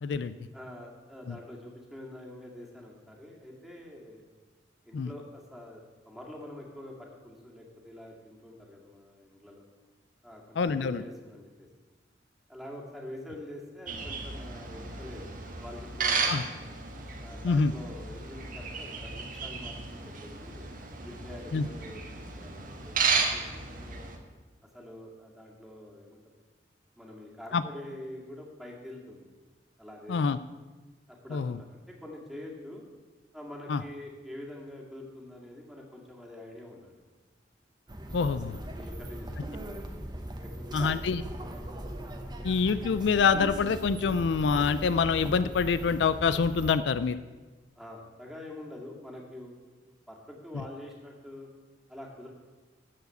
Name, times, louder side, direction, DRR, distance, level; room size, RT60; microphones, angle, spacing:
voice 1, 0.0-0.3 1.3-1.4 4.9-5.1 10.6-11.0 16.3-16.4 17.4-17.7 21.5-21.6 27.5-27.6 30.1-30.4 31.3-31.6 33.7-33.8 38.1-38.6 40.7-41.2 42.4-47.2, left 5 dB, 75° left, 14 dB, 0.4 m, -26 dB
voice 2, 0.5-4.2 4.8-9.6 10.2-11.7 12.5-15.3 15.6-16.6 17.2-20.7 21.0-24.1 24.7-26.4 27.0-29.3 29.8-30.2 31.1-32.8 33.3-36.9 38.4-39.9 40.4-41.6 47.8-49.6 50.1-51.5 51.9-52.3, left 1 dB, ahead, -2 dB, 2.1 m, -46 dB
sound 1, 13.9-24.2, right 4 dB, 50° right, 1.3 m, -34 dB
sound 2, 37.9-46.7, right 1 dB, 25° right, 1.1 m, -39 dB
13.5 x 4.8 x 7.9 m, 1.3 s
head